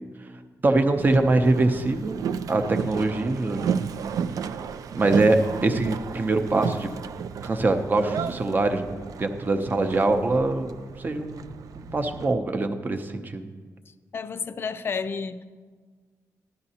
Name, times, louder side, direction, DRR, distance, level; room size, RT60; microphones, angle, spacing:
voice 1, 0.6-2.2 2.5-3.6 4.9-6.9 7.4-8.9 9.2-10.7 11.0-11.5 11.7-13.5, right 2 dB, 30° right, 0.6 m, -23 dB
Boat Water vehicle, 1.0-12.3, right 7 dB, 65° right, 0.4 m, -33 dB
voice 2, 13.9-15.4, left 5 dB, 35° left, 0.4 m, -31 dB
12.0 x 11.5 x 2.8 m
wide cardioid pair, 150°, 6 cm